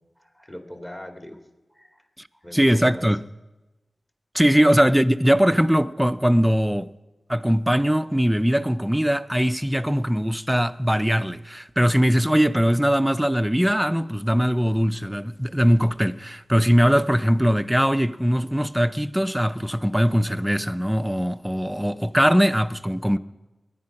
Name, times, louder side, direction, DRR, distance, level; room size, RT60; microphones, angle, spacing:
voice 1, 0.0-1.4 1.7-3.1, left 1 dB, 25° left, 2.3 m, -42 dB
voice 2, 2.5-3.2 4.3-6.9 7.3-23.2, equal, 5° right, 0.5 m, -21 dB
21.0 x 9.6 x 5.9 m
cardioid pair, 45°, 0 cm